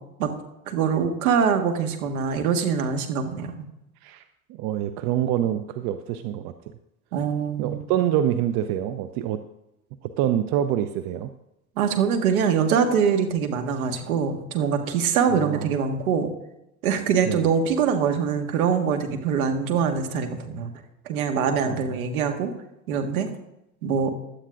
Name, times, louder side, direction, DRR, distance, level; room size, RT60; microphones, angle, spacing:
voice 1, 0.7-3.5 7.1-7.8 11.8-16.3 16.8-20.7 21.0-22.5 22.9-23.3 23.8-24.1, right 6 dB, 75° right, 5 dB, 1.7 m, -23 dB
voice 2, 4.5-6.5 7.6-9.4 10.2-11.3 15.3-15.7 17.2-17.5 21.6-22.0, right 11 dB, 55° right, 10 dB, 0.8 m, -26 dB
16.5 x 11.5 x 2.5 m, 0.88 s
hypercardioid pair, 65°, 44 cm